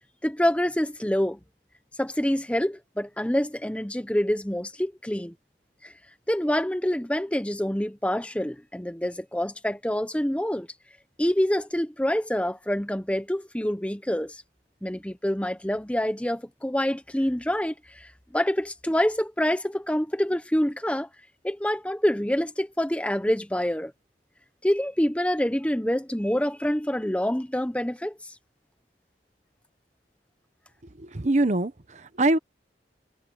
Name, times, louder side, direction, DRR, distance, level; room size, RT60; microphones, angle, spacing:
voice 1, 0.2-1.4 2.0-5.3 5.8-5.9 6.3-10.7 11.2-14.4 14.8-21.1 21.4-23.9 24.6-28.2, equal, 5° left, 0.9 m, -26 dB
voice 2, 31.0-32.4, right 2 dB, 40° right, 1.0 m, -24 dB
head